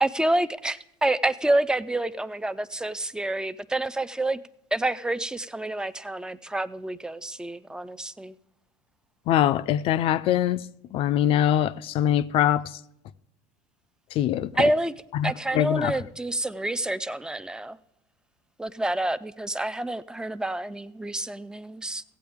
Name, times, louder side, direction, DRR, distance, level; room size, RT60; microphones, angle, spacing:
voice 1, 0.0-4.4 4.7-8.4 14.6-14.9 15.2-17.8 18.6-22.0, right 1 dB, 5° right, 0.4 m, -28 dB
voice 2, 9.3-10.7 10.9-12.8 14.1-14.7 15.1-15.9, left 11 dB, 50° left, 0.5 m, -23 dB
15.5 x 8.5 x 3.5 m
supercardioid pair, 110°, 12 cm